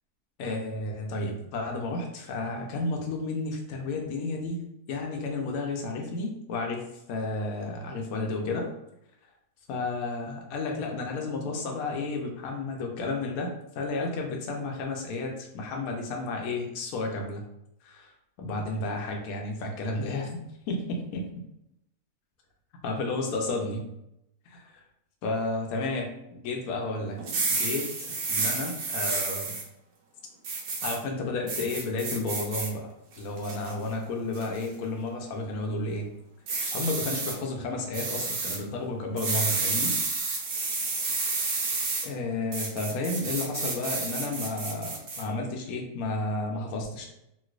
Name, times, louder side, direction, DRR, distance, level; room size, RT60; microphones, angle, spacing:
voice 1, 0.4-4.6 4.9-8.7 9.7-17.4 17.8-18.1 18.4-20.4 20.7-21.2 22.8-23.9 24.5-24.8 25.2-26.1 26.4-27.2 27.5-29.6 30.8-32.9 33.2-36.1 36.6-40.0 41.2-41.6 42.0-47.1, left 2 dB, 75° left, 1 dB, 1.1 m, -32 dB
sound 1, 27.2-29.6 30.4-31.0 31.5-32.7 33.2-33.7 34.3-34.6 36.5-37.3 37.9-38.6 39.2-42.1 42.5-45.2, right 3 dB, 85° right, 1.2 m, -30 dB
3.1 x 2.9 x 2.4 m, 0.81 s
omnidirectional pair, 1.6 m